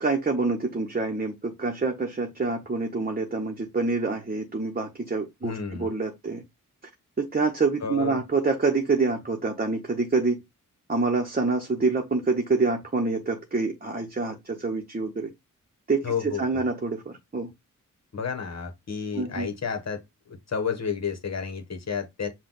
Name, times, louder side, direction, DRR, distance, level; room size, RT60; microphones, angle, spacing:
voice 1, 0.0-6.4 7.2-10.4 10.9-15.3 15.9-17.5 19.1-19.5, right 3 dB, 30° right, 0.9 m, -26 dB
voice 2, 5.4-5.9 7.8-8.2 16.0-16.4 18.1-20.0 20.3-22.3, left 6 dB, 50° left, 1.3 m, -31 dB
5.6 x 2.3 x 3.9 m
wide cardioid pair, 75°, 33 cm